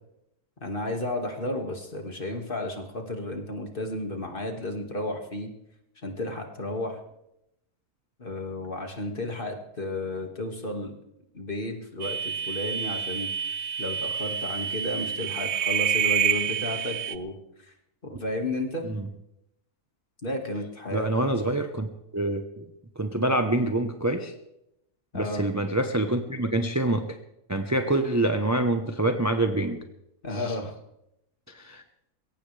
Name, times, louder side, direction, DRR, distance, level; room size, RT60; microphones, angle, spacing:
voice 1, 0.6-5.5 6.0-7.0 8.2-11.0 11.3-13.3 13.8-17.3 18.0-18.9 20.2-21.1 25.1-25.4 30.2-30.7, left 1 dB, 35° left, 3 dB, 2.2 m, -32 dB
sound 1, 12.0-17.2, right 9 dB, 55° right, 0.8 m, -28 dB
voice 2, 20.9-22.7 23.0-24.3 25.1-27.1 27.5-29.8 30.3-30.6 31.5-31.8, right 1 dB, 15° right, 5 dB, 0.8 m, -26 dB
22.0 x 17.5 x 3.4 m, 0.82 s
omnidirectional pair, 1.7 m